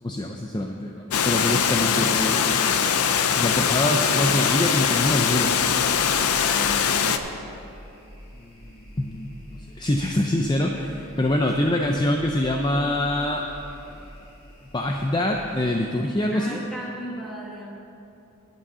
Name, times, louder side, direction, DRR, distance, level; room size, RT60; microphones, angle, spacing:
voice 1, 0.0-2.9 3.3-5.6 8.4-13.4 13.9-14.1 14.7-16.6, left 1 dB, 20° left, 2 dB, 0.5 m, -25 dB
Water, 1.1-7.2, left 7 dB, 85° left, 0.6 m, -22 dB
sound 1, 5.4-15.7, equal, 70° left, 3.2 m, -46 dB
voice 2, 6.4-7.3 11.5-11.6 16.3-17.8, equal, ahead, -4 dB, 1.6 m, -36 dB
11.5 x 7.4 x 6.8 m, 2.8 s
head